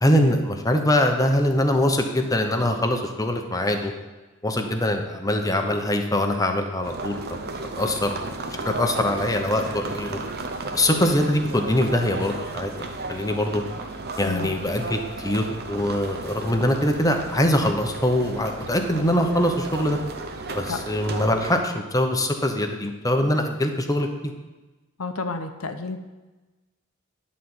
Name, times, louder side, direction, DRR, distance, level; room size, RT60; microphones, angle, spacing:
voice 1, 0.0-3.9 4.4-7.5 7.8-10.2 10.7-13.6 14.2-20.0 20.5-24.3, left 1 dB, 15° left, 4 dB, 0.9 m, -23 dB
sound 1, 6.8-21.5, right 3 dB, 50° right, 0.9 m, -34 dB
voice 2, 25.0-26.0, left 3 dB, 75° left, 8 dB, 0.9 m, -30 dB
11.0 x 4.2 x 7.9 m, 1.2 s
head